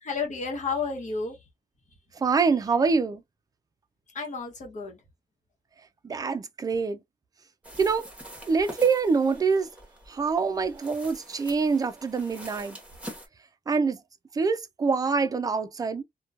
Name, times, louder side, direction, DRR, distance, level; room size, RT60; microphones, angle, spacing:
voice 1, 0.0-1.4 4.1-5.0, left 4 dB, 55° left, 1.0 m, -31 dB
voice 2, 2.2-3.2 6.0-7.0 7.8-8.1 8.5-9.7 10.1-12.8 13.7-14.0 14.3-16.0, right 5 dB, 25° right, 0.3 m, -25 dB
sound 1, 7.6-13.3, right 1 dB, 10° right, 0.9 m, -45 dB
2.9 x 2.1 x 2.4 m
wide cardioid pair, 145°, 15 cm